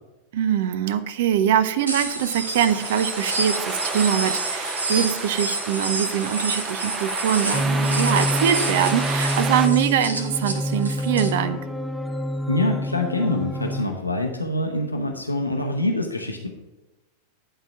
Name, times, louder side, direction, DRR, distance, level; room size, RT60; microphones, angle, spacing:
voice 1, 0.3-11.6, right 9 dB, 55° right, 13 dB, 0.6 m, -23 dB
sound 1, 1.9-11.3, right 2 dB, 75° right, 1.2 m, -29 dB
sound 2, 2.0-9.7, right 3 dB, 20° right, 0.8 m, -31 dB
sound 3, 7.5-13.8, equal, 5° left, 0.5 m, -27 dB
voice 2, 12.5-16.5, left 1 dB, 85° left, 2 dB, 0.9 m, -25 dB
11.0 x 4.0 x 5.8 m, 1.1 s
figure-of-eight pair, 90°, 0 cm